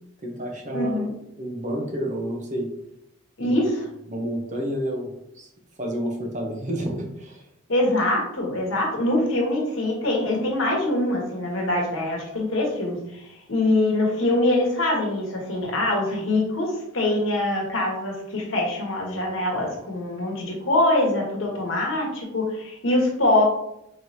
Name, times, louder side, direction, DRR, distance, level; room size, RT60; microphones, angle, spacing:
voice 1, 0.2-2.7 3.4-3.6 4.1-5.5 5.8-7.4, equal, 35° right, 1 dB, 0.8 m, -30 dB
voice 2, 0.7-1.1 3.4-3.8 7.7-23.4, left 1 dB, 70° left, -1 dB, 1.2 m, -24 dB
4.7 x 3.1 x 2.7 m, 0.79 s
head